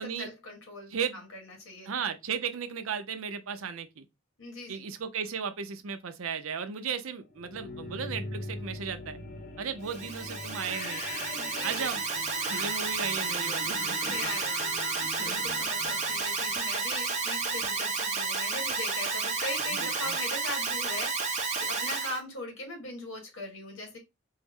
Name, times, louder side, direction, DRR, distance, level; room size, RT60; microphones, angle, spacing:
voice 1, 0.0-1.9 4.4-4.8 11.3-11.9 12.6-12.7 13.9-24.0, left 2 dB, 80° left, 1.6 m, -40 dB
voice 2, 1.9-4.0 4.7-9.2 9.6-11.0 11.6-12.0 12.4-14.1 15.0-15.4 19.7-20.2, right 6 dB, 85° right, 0.6 m, -35 dB
sound 1, 7.3-17.2, left 2 dB, 45° left, 0.9 m, -42 dB
Alarm, 9.8-22.2, right 4 dB, 35° right, 0.8 m, -31 dB
4.5 x 2.1 x 3.5 m
head